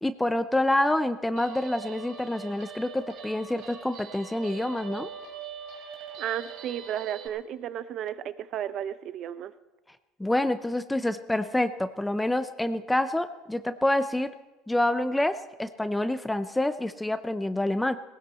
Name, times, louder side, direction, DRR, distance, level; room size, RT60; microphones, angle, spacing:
voice 1, 0.0-5.1 10.2-14.3 14.7-17.9, left 1 dB, 5° left, 10 dB, 0.6 m, -27 dB
Guitar, 1.4-7.3, right 7 dB, 65° right, 3.2 m, -42 dB
voice 2, 6.2-9.5, right 10 dB, 50° right, 14 dB, 0.7 m, -33 dB
19.0 x 17.0 x 4.2 m, 1.1 s
supercardioid pair, 120°, 0 cm